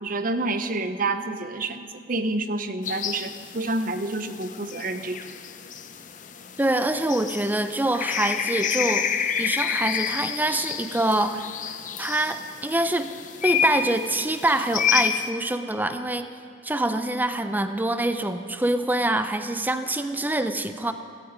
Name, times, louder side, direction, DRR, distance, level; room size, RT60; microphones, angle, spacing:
voice 1, 0.0-5.3, right 2 dB, 45° right, 10 dB, 0.8 m, -28 dB
sound 1, 2.8-15.3, left 8 dB, 40° left, 0.7 m, -29 dB
voice 2, 6.6-11.5 12.0-13.1 13.4-16.3 16.6-20.9, right 1 dB, 10° right, 9 dB, 0.6 m, -25 dB
16.0 x 16.0 x 5.1 m, 2.4 s
head